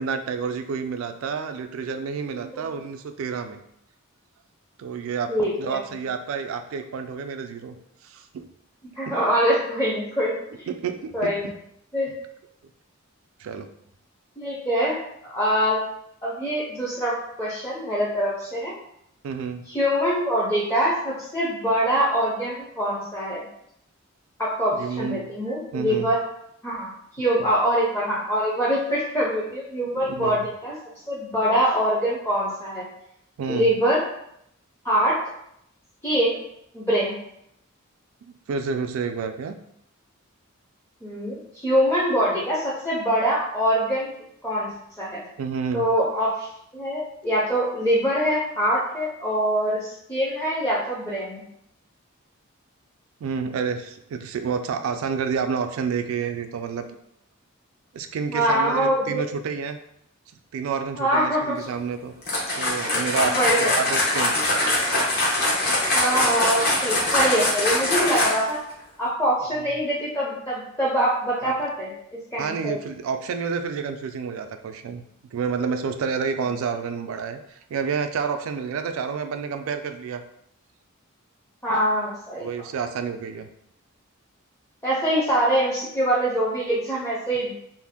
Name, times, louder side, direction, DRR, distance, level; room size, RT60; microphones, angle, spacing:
voice 1, 0.0-3.6 4.8-7.8 8.0-8.5 9.1-9.2 10.7-11.5 13.4-13.7 19.2-19.6 24.7-25.2 25.7-26.1 30.0-30.5 33.4-33.7 38.2-39.6 45.4-45.9 53.2-57.0 57.9-59.8 60.5-62.1 62.5-64.4 69.6-69.7 71.4-71.5 72.4-75.0 75.3-80.2 82.4-83.5, right 6 dB, 70° right, 9 dB, 0.3 m, -29 dB
voice 2, 5.3-5.8 9.0-10.7 11.1-11.5 11.9-12.1 14.4-15.0 15.2-15.8 16.2-18.7 19.7-23.4 24.4-26.2 26.6-26.9 27.2-30.7 31.1-32.8 33.5-34.0 34.8-35.2 36.0-36.4 36.7-37.1 41.0-44.1 44.4-44.7 45.0-45.2 45.7-46.5 46.7-51.4 58.3-59.2 61.0-61.7 62.9-63.0 63.2-63.8 65.9-68.6 69.0-71.9 72.3-72.7 81.6-82.5 84.8-87.5, equal, 10° left, -7 dB, 0.5 m, -24 dB
sound 1, 62.2-68.6, left 1 dB, 50° left, 0.7 m, -23 dB
2.6 x 2.0 x 3.5 m, 0.74 s
head